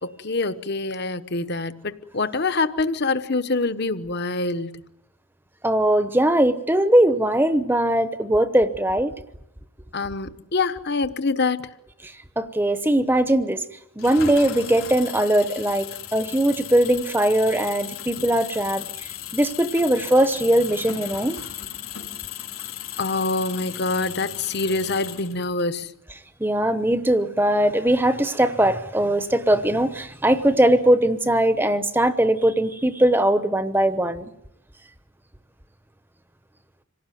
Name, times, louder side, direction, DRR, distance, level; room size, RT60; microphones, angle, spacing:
voice 1, 0.0-4.8 9.9-11.7 23.0-25.9, left 3 dB, 50° left, 1.1 m, -25 dB
voice 2, 5.6-9.2 12.4-13.6 14.0-21.4 26.4-34.3, right 1 dB, 10° right, 0.9 m, -20 dB
Engine, 14.0-25.6, left 10 dB, 85° left, 4.0 m, -36 dB
27.0 x 18.0 x 9.3 m
head